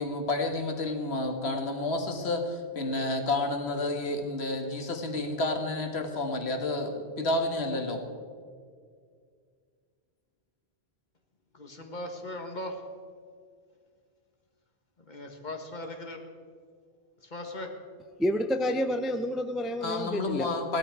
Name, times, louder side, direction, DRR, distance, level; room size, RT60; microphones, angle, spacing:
voice 1, 0.0-8.0 19.8-20.8, left 2 dB, 85° left, 5 dB, 1.8 m, -30 dB
voice 2, 11.5-12.8 15.0-16.2 17.2-17.7, left 1 dB, 45° left, 4 dB, 1.7 m, -39 dB
voice 3, 18.2-20.5, equal, ahead, 7 dB, 0.5 m, -29 dB
17.0 x 12.5 x 4.8 m, 2.1 s
omnidirectional pair, 1.1 m